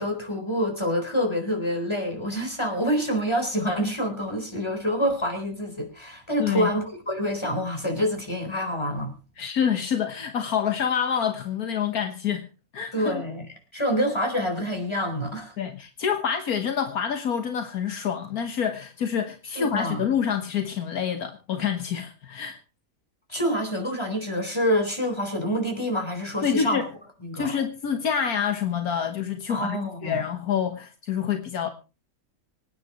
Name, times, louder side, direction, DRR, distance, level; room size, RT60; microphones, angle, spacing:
voice 1, 0.0-9.1 12.9-13.4 13.7-15.5 19.6-20.0 23.3-26.8 27.2-27.5 29.5-30.2, equal, 20° left, 4.1 m, -27 dB
voice 2, 6.4-6.7 9.4-12.5 12.7-13.2 15.6-22.6 26.4-26.9 27.3-31.7, left 7 dB, 80° left, 1.7 m, -27 dB
25.5 x 9.6 x 3.0 m
omnidirectional pair, 1.6 m